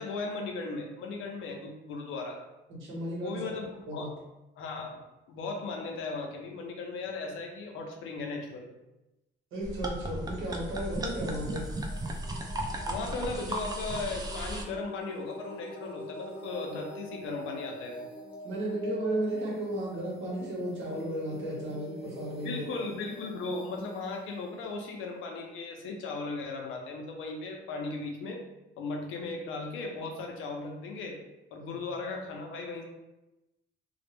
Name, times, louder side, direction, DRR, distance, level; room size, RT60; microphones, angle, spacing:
voice 1, 0.0-2.4 3.2-4.1 4.6-5.0 5.3-8.7 12.9-18.1 22.4-28.4 28.8-31.2 31.5-32.8, left 3 dB, 85° left, 2 dB, 0.5 m, -37 dB
voice 2, 2.7-3.4 3.9-4.1 9.5-11.6 18.4-22.6 31.6-31.8, right 1 dB, 85° right, -4 dB, 0.9 m, -34 dB
sound 1, 9.6-14.6, right 1 dB, 20° right, 0.3 m, -35 dB
sound 2, 11.2-25.9, left 1 dB, 25° left, 0.7 m, -46 dB
2.1 x 2.0 x 3.0 m, 0.98 s
cardioid pair, 90°, 20 cm